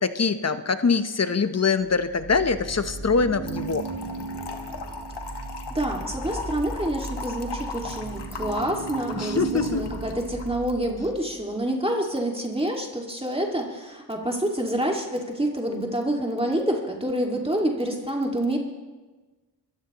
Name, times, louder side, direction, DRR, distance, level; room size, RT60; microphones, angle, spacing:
voice 1, 0.0-3.8 9.2-9.8, left 5 dB, 35° left, 11 dB, 0.9 m, -23 dB
sound 1, 1.8-11.2, right 3 dB, 45° right, 4.1 m, -36 dB
Trickle dribble / Fill (with liquid), 3.5-10.6, left 4 dB, 70° left, 1.4 m, -38 dB
voice 2, 5.7-18.6, right 1 dB, 15° right, 0 dB, 2.1 m, -27 dB
24.5 x 15.0 x 3.0 m, 1.3 s
cardioid pair, 60°, 42 cm